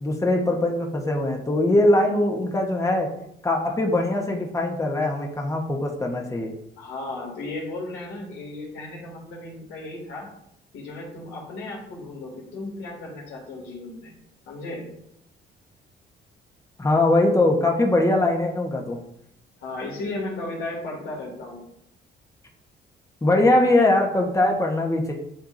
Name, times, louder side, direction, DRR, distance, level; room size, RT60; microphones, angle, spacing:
voice 1, 0.0-3.1 3.4-6.5 16.8-19.0 23.2-25.1, left 2 dB, 15° left, 1 dB, 1.1 m, -21 dB
voice 2, 6.8-10.3 10.7-14.1 14.5-14.9 19.6-21.6, left 2 dB, 90° left, -3 dB, 2.5 m, -35 dB
10.0 x 3.6 x 2.6 m, 0.77 s
cardioid pair, 90°, 20 cm